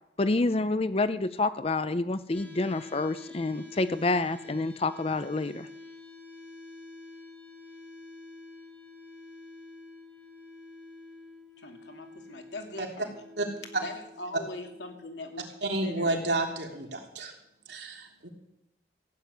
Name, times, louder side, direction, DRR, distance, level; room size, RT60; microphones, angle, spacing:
voice 1, 0.2-5.7, left 2 dB, 35° left, 13 dB, 0.5 m, -28 dB
sound 1, 2.3-16.3, left 2 dB, 10° left, 3.7 m, -48 dB
voice 2, 11.6-13.2 13.8-15.5 15.8-16.2, left 2 dB, 75° left, 4 dB, 2.7 m, -41 dB
voice 3, 15.6-17.3 17.7-18.3, right 2 dB, 70° right, 1 dB, 3.4 m, -30 dB
15.5 x 9.7 x 8.3 m, 0.82 s
head